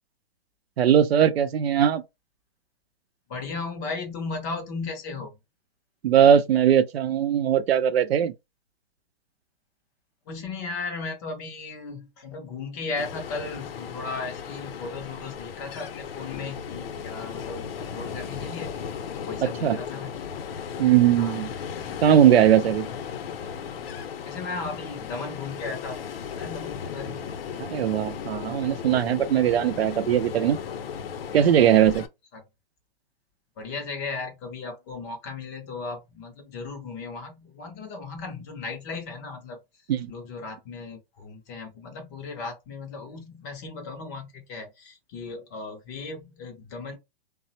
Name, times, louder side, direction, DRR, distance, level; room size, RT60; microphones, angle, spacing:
voice 1, 0.8-2.0 6.0-8.3 19.6-19.8 20.8-21.5 22.0-22.9 27.6-30.6 31.3-32.0 39.9-40.1, right 10 dB, 90° right, 0.5 m, -20 dB
voice 2, 3.3-5.4 10.3-18.8 19.2-20.2 21.2-21.4 24.2-27.3 32.3-32.4 33.6-39.6 40.1-47.0, left 4 dB, 20° left, 0.4 m, -36 dB
Ocean, 13.0-32.1, left 7 dB, 70° left, 0.6 m, -36 dB
3.2 x 2.0 x 2.7 m
hypercardioid pair, 150°, 30 cm